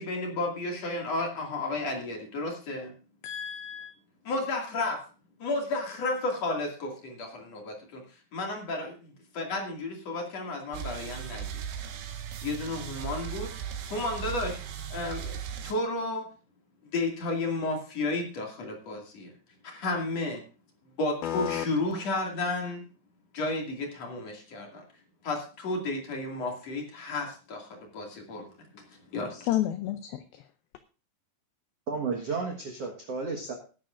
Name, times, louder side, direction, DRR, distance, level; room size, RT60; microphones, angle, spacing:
voice 1, 0.0-2.9 4.2-5.0 5.4-8.0 8.3-11.6 12.4-13.5 13.9-14.6 14.9-16.3 16.9-19.3 19.6-20.4 21.0-22.8 23.3-24.8 25.2-28.5 28.7-29.5, left 2 dB, 45° left, 2.9 m, -32 dB
voice 2, 3.2-3.9 21.2-21.7 29.3-30.4, left 12 dB, 85° left, 2.1 m, -31 dB
sound 1, 10.7-15.7, right 8 dB, 85° right, 3.6 m, -37 dB
voice 3, 31.9-33.5, right 4 dB, 65° right, 1.5 m, -32 dB
19.0 x 10.5 x 2.5 m
omnidirectional pair, 5.0 m